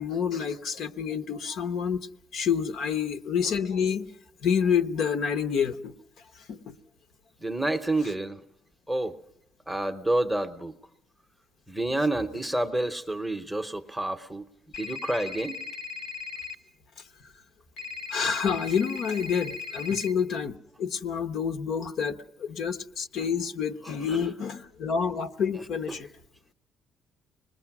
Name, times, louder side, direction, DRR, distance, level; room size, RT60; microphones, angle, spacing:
voice 1, 0.0-2.1 2.3-4.1 4.4-5.9 6.5-6.7 18.1-26.1, left 7 dB, 60° left, 9 dB, 1.0 m, -28 dB
voice 2, 7.4-8.4 8.9-9.2 9.7-10.7 11.7-14.4 14.8-15.6 24.1-24.2 25.6-26.0, right 1 dB, 5° right, 7 dB, 0.8 m, -29 dB
sound 1, 14.7-16.5 17.8-20.1, left 6 dB, 75° left, 1.9 m, -38 dB
26.0 x 20.5 x 6.0 m, 0.69 s
cardioid pair, 170°, 0 cm